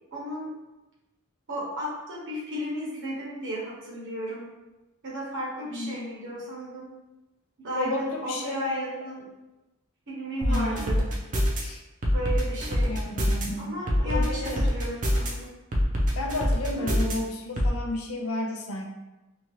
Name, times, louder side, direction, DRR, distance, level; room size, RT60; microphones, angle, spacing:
voice 1, 0.1-0.5 1.5-4.5 5.0-6.9 7.6-9.2 10.1-11.0 12.1-12.9 13.6-15.5 16.7-17.0, equal, 60° right, -5 dB, 1.0 m, -34 dB
voice 2, 5.6-6.0 7.7-9.0 10.4-11.0 11.6-11.8 12.9-13.8 14.0-14.7 16.2-18.8, left 2 dB, 80° left, 1 dB, 0.5 m, -32 dB
sound 1, 10.4-11.6 12.0-13.5 13.9-15.3 15.7-17.1 17.6-17.7, equal, 40° right, 0.5 m, -24 dB
2.8 x 2.4 x 3.0 m, 1.0 s
head